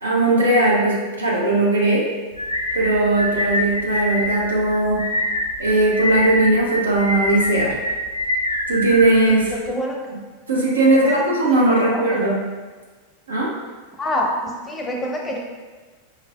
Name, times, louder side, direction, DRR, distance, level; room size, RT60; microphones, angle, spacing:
voice 1, 0.0-2.1 2.7-5.1 5.6-7.7 8.7-9.5 10.5-12.4 13.3-13.5, right 2 dB, 75° right, -4 dB, 0.9 m, -18 dB
sound 1, 2.4-9.7, left 1 dB, 85° left, 0.4 m, -25 dB
voice 2, 9.3-10.1 11.0-12.3 14.0-15.4, left 1 dB, 15° left, 0 dB, 0.6 m, -27 dB
4.6 x 3.2 x 2.3 m, 1.3 s
figure-of-eight pair, 90°, 0 cm